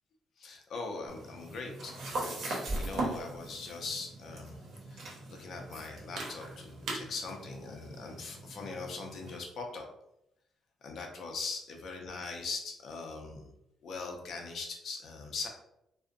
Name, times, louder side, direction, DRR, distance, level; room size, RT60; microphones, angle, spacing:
voice 1, 0.4-4.6 4.9-9.9 10.8-13.5 13.8-15.5, left 4 dB, 65° left, 2 dB, 0.5 m, -41 dB
sound 1, 1.1-9.4, right 2 dB, 70° right, 0.7 m, -41 dB
sound 2, 2.7-4.7, right 1 dB, 5° right, 0.7 m, -41 dB
2.5 x 2.0 x 2.5 m, 0.82 s
cardioid pair, 90°, 0 cm